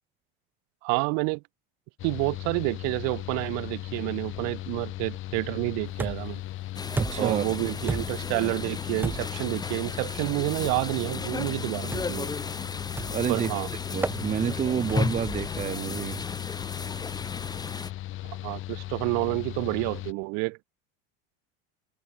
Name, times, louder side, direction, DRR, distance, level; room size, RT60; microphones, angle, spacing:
voice 1, 0.8-1.4 2.0-6.4 7.2-12.3 13.3-13.7 18.3-20.6, right 33 dB, 60° right, 3.0 m, -29 dB
Mechanical fan, 2.0-20.1, left 15 dB, 45° left, 6.2 m, -37 dB
sound 1, 6.0-6.4 7.0-7.4 7.9-8.3 9.0-9.4 10.2-10.4 11.9-12.3 13.0-13.3 14.0-14.2 14.9-15.2, right 3 dB, 5° right, 0.7 m, -32 dB
sound 2, 6.8-17.9, left 4 dB, 15° left, 4.3 m, -35 dB
voice 2, 6.9-7.4 13.1-13.5 13.9-16.2, right 9 dB, 25° right, 1.1 m, -29 dB
cardioid pair, 150°, 29 cm